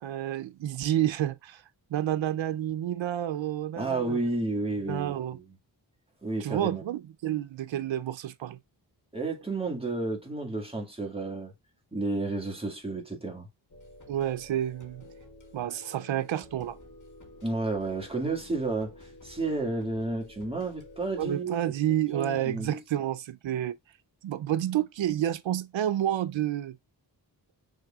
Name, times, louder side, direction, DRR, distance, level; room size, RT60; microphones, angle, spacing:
voice 1, 0.0-1.6 1.9-4.2 4.9-5.4 6.4-8.6 14.1-15.1 15.5-16.8 21.2-23.8 24.2-26.8, right 11 dB, 85° right, 0.6 m, -29 dB
voice 2, 3.8-5.6 6.2-6.8 9.1-11.5 11.9-13.5 17.4-21.7 22.1-22.8, right 2 dB, 15° right, 1.9 m, -31 dB
sound 1, 13.7-21.3, left 1 dB, 45° left, 1.9 m, -51 dB
6.3 x 3.4 x 2.3 m
wide cardioid pair, 80°, 44 cm